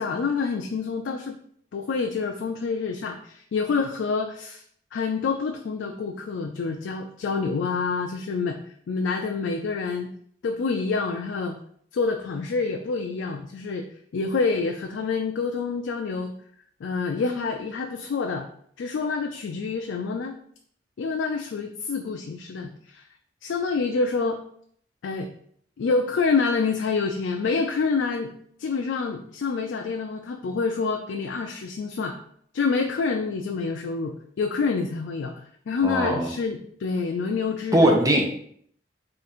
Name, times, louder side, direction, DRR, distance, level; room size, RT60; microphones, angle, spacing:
voice 1, 0.0-1.4 1.7-4.6 4.9-8.6 8.9-10.1 10.4-11.6 11.9-13.9 14.1-16.3 16.8-18.5 18.8-20.4 21.0-23.0 23.4-24.4 25.0-25.3 25.8-28.3 28.6-32.1 32.5-35.3 35.7-37.9, left 4 dB, 75° left, 3 dB, 0.3 m, -27 dB
voice 2, 35.8-36.3 37.7-38.4, right 1 dB, 20° right, 1 dB, 0.6 m, -20 dB
3.8 x 2.4 x 4.3 m, 0.64 s
head